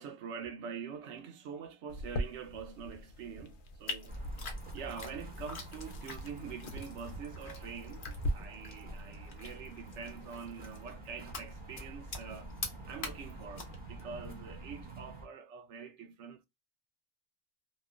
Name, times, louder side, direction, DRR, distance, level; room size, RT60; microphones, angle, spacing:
voice 1, 0.0-16.5, right 6 dB, 85° right, 0.9 m, -45 dB
sound 1, 1.9-8.3, equal, 85° left, 0.9 m, -42 dB
sound 2, 3.9-14.7, left 3 dB, 55° left, 0.8 m, -47 dB
sound 3, 4.1-15.3, right 1 dB, 10° right, 0.8 m, -47 dB
2.8 x 2.1 x 2.3 m
omnidirectional pair, 1.1 m